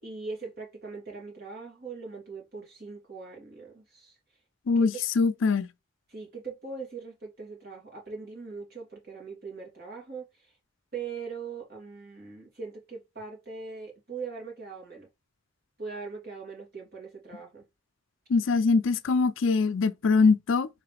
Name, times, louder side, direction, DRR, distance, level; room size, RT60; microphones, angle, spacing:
voice 1, 0.0-4.2 4.7-4.9 6.1-10.5 10.9-15.1 15.8-17.7, right 4 dB, 55° right, 2.5 m, -41 dB
voice 2, 4.7-5.7 18.3-20.7, left 4 dB, 75° left, 0.4 m, -23 dB
4.7 x 3.3 x 3.3 m
head